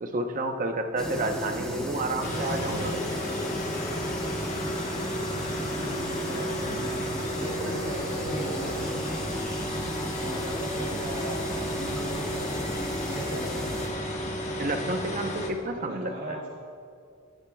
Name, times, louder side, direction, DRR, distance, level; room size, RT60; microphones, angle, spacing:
voice 1, 0.0-2.9 14.6-16.4, right 2 dB, 40° right, 5 dB, 0.8 m, -30 dB
sound 1, 1.0-13.9, left 1 dB, 5° left, 1.5 m, -35 dB
sound 2, 2.2-15.5, equal, 35° left, 1.2 m, -33 dB
voice 2, 2.2-3.0 5.6-9.0 10.2-13.9 15.7-16.5, right 1 dB, 75° right, -7 dB, 3.1 m, -38 dB
19.0 x 12.0 x 2.3 m, 2.3 s
head